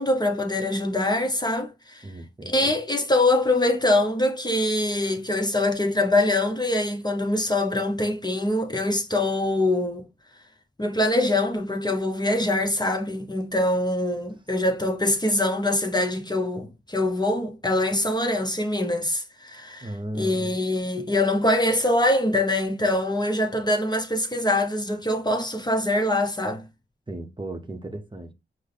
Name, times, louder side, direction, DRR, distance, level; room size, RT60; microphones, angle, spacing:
voice 1, 0.0-2.0 2.4-10.0 10.8-19.9 20.2-26.6, left 1 dB, 20° left, 0.8 m, -24 dB
voice 2, 2.0-2.7 19.8-20.6 27.1-28.3, right 1 dB, 25° right, 0.9 m, -35 dB
4.9 x 2.1 x 3.9 m
cardioid pair, 45°, 21 cm